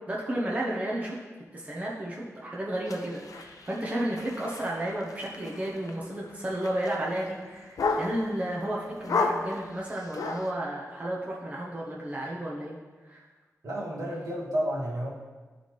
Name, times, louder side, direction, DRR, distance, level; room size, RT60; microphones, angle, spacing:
voice 1, 0.1-1.2 1.5-12.8 13.1-13.2, right 1 dB, 25° right, -5 dB, 0.9 m, -32 dB
sound 1, 2.9-8.4 9.0-10.5, left 4 dB, 90° left, 0.6 m, -33 dB
voice 2, 13.6-15.1, equal, 70° right, -5 dB, 1.7 m, -31 dB
12.0 x 4.2 x 3.2 m, 1.3 s
wide cardioid pair, 125°, 6 cm